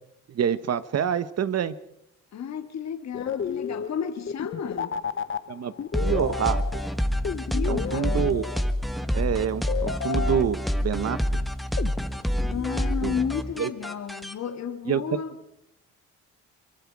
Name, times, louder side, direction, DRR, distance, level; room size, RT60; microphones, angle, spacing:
voice 1, 0.3-1.7 5.5-5.7 6.0-6.6 7.6-8.5 9.1-11.4 13.0-13.1 13.6-13.7 14.9-15.0, right 8 dB, 55° right, 1.3 m, -27 dB
voice 2, 2.3-5.0 7.5-8.5 12.5-15.4, left 7 dB, 60° left, 2.1 m, -32 dB
sound 1, 3.1-9.0 9.7-11.1 11.8-13.2, left 7 dB, 40° left, 1.1 m, -33 dB
sound 2, 5.9-14.3, equal, ahead, 1.4 m, -27 dB
24.0 x 23.0 x 4.8 m
cardioid pair, 90°, 30 cm